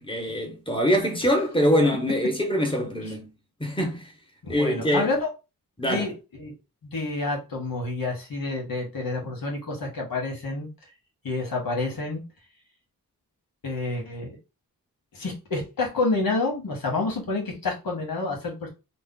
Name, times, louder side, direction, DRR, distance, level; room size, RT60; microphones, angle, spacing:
voice 1, 0.0-3.3 3.6-4.1 4.5-5.1 5.8-6.1, equal, 15° left, 1.2 m, -24 dB
voice 2, 4.4-5.3 5.8-6.1 6.4-6.5 6.8-10.7 11.2-12.2 13.6-14.4 15.1-18.7, left 3 dB, 70° left, 1.4 m, -28 dB
3.2 x 2.1 x 3.7 m
cardioid pair, 70°, 36 cm